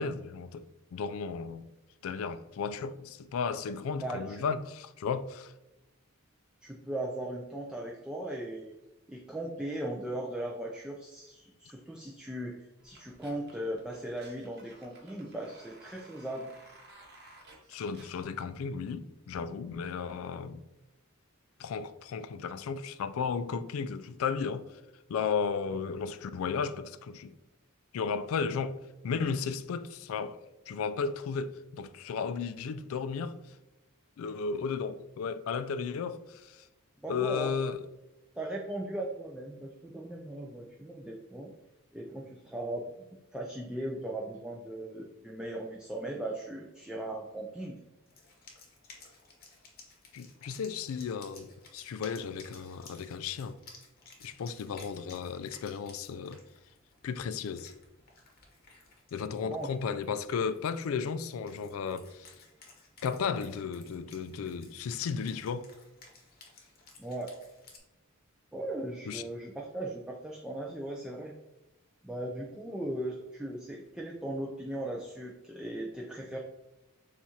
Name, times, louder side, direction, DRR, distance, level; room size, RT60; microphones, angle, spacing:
voice 1, 0.0-1.7 2.0-5.5 17.7-20.6 21.6-24.7 25.1-27.3 27.9-28.8 29.0-33.4 34.2-36.6 37.1-37.8 50.1-53.6 54.2-56.4 57.0-57.7 59.1-62.3 63.0-65.7 69.1-69.2, left 6 dB, 70° left, 0.3 m, -34 dB
voice 2, 4.0-4.4 6.6-8.7 9.1-16.5 37.0-37.5 38.4-41.5 41.9-43.1 43.3-47.8 59.4-59.7 67.0-67.3 68.5-71.3 72.0-76.4, right 1 dB, 5° right, 0.3 m, -38 dB
sound 1, 12.8-18.2, right 2 dB, 50° right, 0.9 m, -56 dB
Wind instrument woodwind instrument, 48.1-67.8, left 3 dB, 45° left, 0.9 m, -56 dB
7.1 x 2.4 x 2.8 m
head